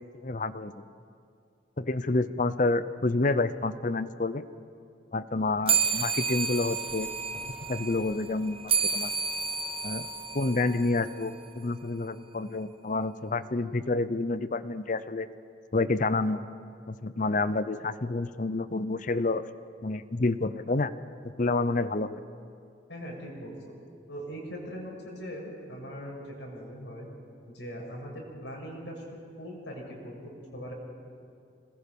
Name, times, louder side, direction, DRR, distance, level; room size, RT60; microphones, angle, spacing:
voice 1, 0.2-0.7 1.8-4.4 5.1-7.1 7.7-8.6 8.9-9.1 9.8-10.1 10.3-15.3 15.7-16.5 16.9-19.4 19.8-20.9 21.4-22.2, left 3 dB, 45° left, 14 dB, 0.7 m, -28 dB
sound 1, 5.7-11.5, right 6 dB, 30° right, 1.0 m, -31 dB
voice 2, 22.9-23.5 24.1-27.1 27.5-30.7, equal, 85° left, -2 dB, 6.6 m, -40 dB
26.0 x 20.5 x 5.4 m, 2.4 s
head